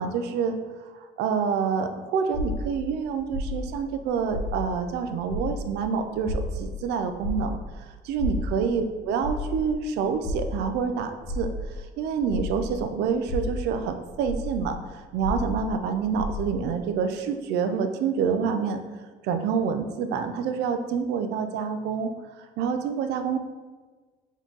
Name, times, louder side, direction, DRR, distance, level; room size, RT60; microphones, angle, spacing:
voice 1, 0.0-7.6 8.0-11.5 12.0-18.8 19.2-22.1 22.4-23.4, right 6 dB, 85° right, 7 dB, 0.5 m, -27 dB
sound 1, 2.3-5.0 5.3-12.8 13.2-16.7, left 1 dB, 70° left, 1.1 m, -33 dB
4.3 x 3.0 x 3.9 m, 1.4 s
cardioid pair, 110°, 17 cm